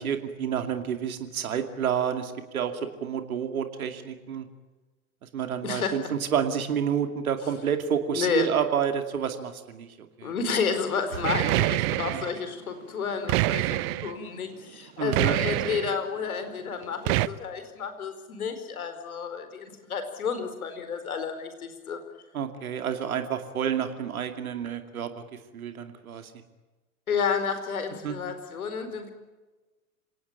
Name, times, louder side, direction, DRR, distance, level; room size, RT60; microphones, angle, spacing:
voice 1, 0.0-4.5 5.2-10.3 11.1-11.3 12.3-12.4 15.0-15.3 22.3-26.3 28.0-28.2, right 8 dB, 70° right, 7 dB, 2.6 m, -29 dB
voice 2, 5.6-6.0 8.1-8.5 10.2-22.0 27.1-29.1, left 6 dB, 75° left, 8 dB, 4.7 m, -31 dB
sound 1, 11.2-12.3 13.3-14.1 15.1-16.0 17.1-17.3, right 18 dB, 45° right, 0.9 m, -25 dB
27.0 x 18.5 x 9.1 m, 1.2 s
figure-of-eight pair, 95°, 44 cm